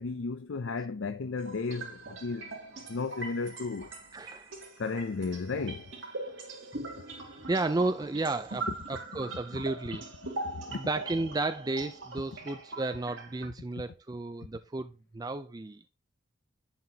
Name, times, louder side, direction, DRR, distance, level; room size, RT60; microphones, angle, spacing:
voice 1, 0.0-2.5 2.9-3.9 4.8-5.9 9.5-9.6 10.4-10.8, left 4 dB, 70° left, 0.5 m, -34 dB
sound 1, 1.4-13.5, right 3 dB, 65° right, 2.4 m, -41 dB
voice 2, 4.1-4.5 7.1-10.0 10.7-15.8, right 2 dB, 20° right, 0.4 m, -33 dB
11.0 x 7.6 x 2.8 m
head